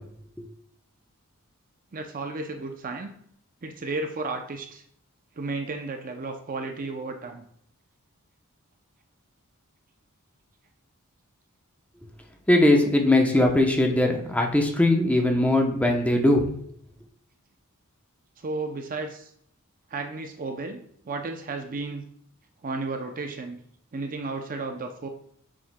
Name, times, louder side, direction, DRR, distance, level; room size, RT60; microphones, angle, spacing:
voice 1, 1.9-3.1 3.6-4.8 5.4-7.5 18.4-19.3 19.9-20.8 21.1-22.1 22.6-23.6 23.9-25.1, right 3 dB, 40° right, 5 dB, 0.5 m, -33 dB
voice 2, 12.5-16.5, left 1 dB, 5° left, 2 dB, 0.7 m, -20 dB
7.6 x 6.1 x 2.2 m, 0.66 s
head